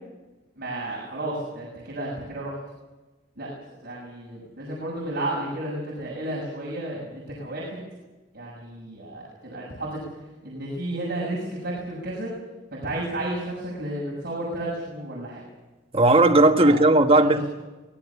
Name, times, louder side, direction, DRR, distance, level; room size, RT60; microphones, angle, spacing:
voice 1, 0.6-2.6 3.4-3.5 3.8-7.8 8.3-10.0 10.4-12.3 12.7-15.4 16.6-16.8 17.1-17.5, right 1 dB, 50° right, 6.6 m, -32 dB
voice 2, 15.9-17.4, right 2 dB, 30° right, 1.4 m, -16 dB
24.5 x 19.0 x 7.1 m
head